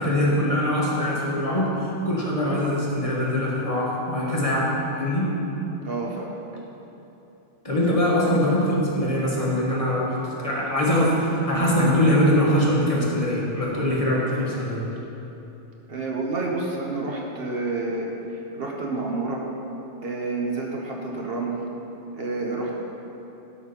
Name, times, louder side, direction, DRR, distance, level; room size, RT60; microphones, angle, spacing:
voice 1, 0.0-5.3 7.6-14.9, left 1 dB, 30° left, -5 dB, 1.4 m, -22 dB
voice 2, 5.8-6.4 15.9-19.5 20.0-21.5 22.1-22.8, right 3 dB, 55° right, -1 dB, 1.0 m, -29 dB
12.0 x 4.4 x 5.5 m, 3.0 s
omnidirectional pair, 1.2 m